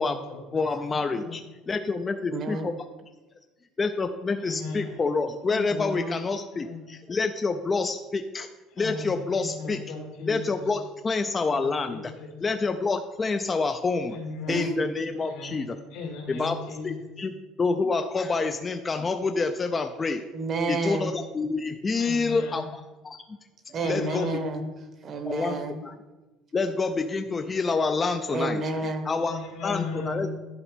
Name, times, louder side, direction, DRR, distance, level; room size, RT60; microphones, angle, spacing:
voice 1, 0.0-0.4 0.9-1.4 4.4-5.0 5.4-5.8 6.5-6.8 8.8-10.6 11.5-11.6 11.9-12.3 14.1-14.8 15.1-17.1 22.0-22.7 23.8-24.4 29.2-30.2, left 4 dB, 85° left, 0 dB, 2.3 m, -37 dB
voice 2, 0.5-1.4 1.7-2.7 3.8-8.5 8.8-9.8 10.3-12.1 12.4-14.2 14.5-15.8 16.3-16.6 16.8-20.2 20.7-22.6 23.0-23.4 23.9-24.4 25.3-25.9 26.5-28.6 29.1-30.3, left 4 dB, 15° left, 7 dB, 0.3 m, -27 dB
voice 3, 2.3-2.7 5.7-6.2 14.5-14.8 20.3-21.1 23.7-24.7 25.0-25.8 28.3-29.1, right 3 dB, 30° right, 7 dB, 0.8 m, -30 dB
11.0 x 4.1 x 5.0 m, 1.2 s
cardioid pair, 170°, 0 cm